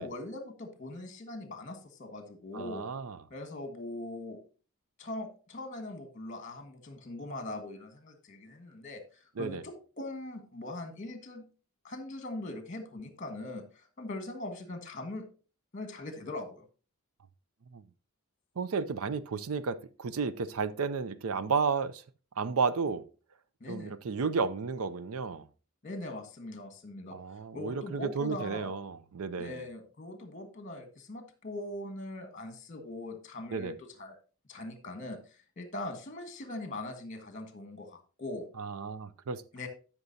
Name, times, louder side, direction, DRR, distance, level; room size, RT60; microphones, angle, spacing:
voice 1, 0.0-2.9 3.3-4.4 5.0-11.4 11.8-15.2 15.7-16.6 23.6-23.9 25.8-28.7 29.4-34.2 34.5-38.5 39.5-39.7, left 2 dB, 35° left, 1.5 m, -41 dB
voice 2, 2.5-3.2 9.4-9.6 17.7-17.8 18.6-22.0 22.4-23.0 23.7-25.5 27.1-29.6 33.5-33.7 38.6-39.4, right 5 dB, 70° right, 0.5 m, -32 dB
13.0 x 5.9 x 2.7 m
head